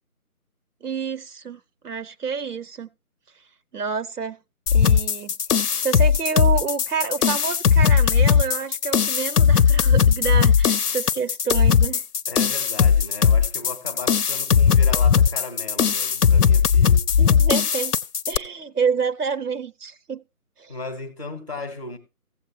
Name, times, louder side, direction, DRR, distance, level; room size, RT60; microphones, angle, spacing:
voice 1, 0.8-2.9 3.7-4.4 4.7-12.0 17.2-18.0 18.3-20.2 20.6-20.7, right 5 dB, 90° right, 0.9 m, -28 dB
sound 1, 4.7-18.4, left 7 dB, 85° left, 0.7 m, -18 dB
voice 2, 12.3-17.1 20.7-22.0, left 3 dB, 20° left, 0.8 m, -36 dB
15.5 x 7.8 x 2.7 m
figure-of-eight pair, 165°, 45 cm